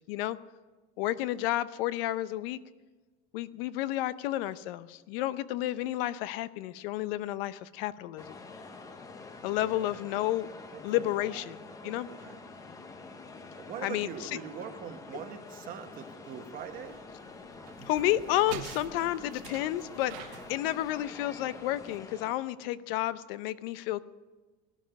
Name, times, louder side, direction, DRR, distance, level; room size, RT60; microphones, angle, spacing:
voice 1, 1.0-2.6 3.3-8.4 9.4-10.5 10.8-11.6 11.8-12.1 13.8-14.3 17.8-24.0, left 14 dB, 75° left, 16 dB, 0.7 m, -31 dB
sound 1, 8.2-22.3, left 3 dB, 10° left, 0.7 m, -47 dB
voice 2, 9.7-10.0 10.7-11.5 11.8-12.4 13.6-17.0, right 8 dB, 30° right, 7 dB, 1.2 m, -43 dB
sound 2, 16.5-22.0, right 10 dB, 55° right, 1.4 m, -47 dB
18.5 x 11.5 x 6.4 m, 1.3 s
cardioid pair, 175°, 29 cm